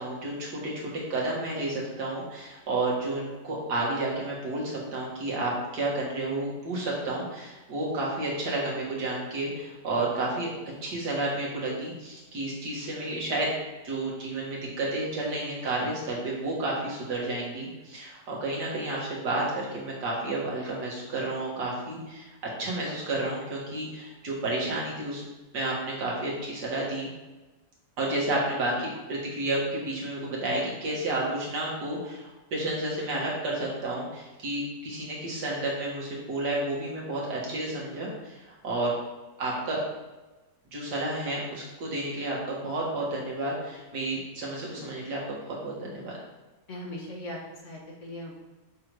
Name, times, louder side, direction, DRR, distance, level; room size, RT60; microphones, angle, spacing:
voice 1, 0.0-10.5 10.8-13.5 13.8-22.3 22.6-25.2 25.5-27.1 28.0-38.9 39.4-39.8 40.7-46.1, right 2 dB, 75° right, -4 dB, 2.2 m, -31 dB
voice 2, 46.7-47.4 47.6-48.4, left 1 dB, 50° left, -2 dB, 1.4 m, -39 dB
6.5 x 3.6 x 4.7 m, 1.1 s
omnidirectional pair, 1.8 m